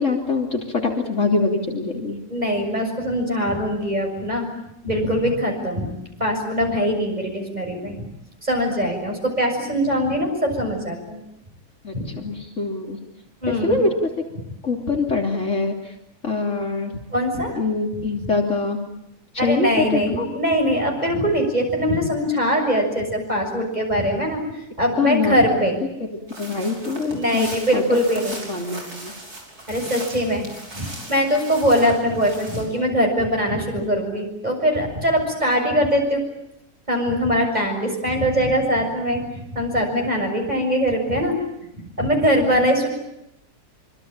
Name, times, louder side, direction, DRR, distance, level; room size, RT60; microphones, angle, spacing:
voice 1, 0.0-2.2 11.8-13.0 13.5-14.2 14.6-15.9 16.2-16.9 17.6-18.8 19.3-20.3 25.0-25.6 26.0-28.0 28.5-29.1 33.8-33.9, left 3 dB, 50° left, 1 dB, 3.5 m, -24 dB
voice 2, 2.3-4.5 4.8-5.9 6.2-8.1 8.4-11.2 11.9-12.1 13.4-13.9 17.1-17.6 18.2-18.3 19.4-25.8 27.1-28.4 29.7-30.5 30.7-36.2 36.9-41.4 42.0-42.9, equal, 25° right, 2 dB, 6.9 m, -22 dB
sound 1, 26.3-32.7, right 2 dB, 70° right, 6.4 m, -38 dB
26.0 x 25.5 x 8.9 m, 0.82 s
omnidirectional pair, 1.7 m